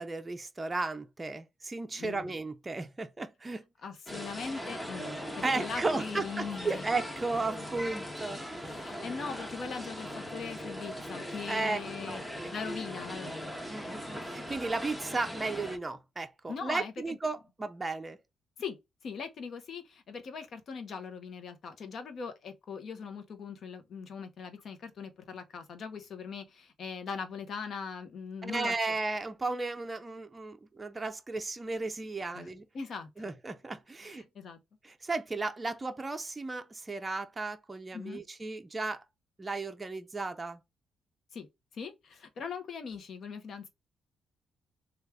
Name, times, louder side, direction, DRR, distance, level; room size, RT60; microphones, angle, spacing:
voice 1, 0.0-3.7 5.4-8.7 11.5-11.8 12.1-12.5 13.7-18.2 28.4-32.7 33.2-34.2 34.8-39.0 39.4-40.6, right 3 dB, 20° right, 0.5 m, -35 dB
voice 2, 1.9-2.3 3.8-5.1 5.4-6.9 8.6-12.2 12.5-13.5 13.8-14.0 16.5-17.2 18.6-18.8 19.0-28.7 32.3-32.5 32.7-33.1 34.0-34.6 37.9-38.2 41.3-41.5 41.7-43.7, left 5 dB, 60° left, 0.8 m, -40 dB
sound 1, 4.1-15.8, equal, 10° left, 0.8 m, -40 dB
3.2 x 2.3 x 3.4 m
cardioid pair, 90°, 0 cm